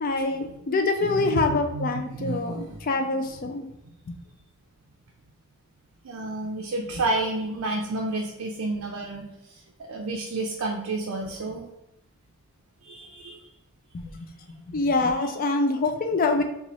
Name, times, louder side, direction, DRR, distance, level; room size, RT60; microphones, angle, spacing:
voice 1, 0.0-3.6 4.1-4.2 13.9-14.3 14.7-16.4, left 3 dB, 40° left, 5 dB, 0.4 m, -25 dB
voice 2, 1.0-3.1 6.0-11.6 12.8-13.4, right 2 dB, 75° right, 0 dB, 0.4 m, -31 dB
4.1 x 2.4 x 3.0 m, 0.84 s
head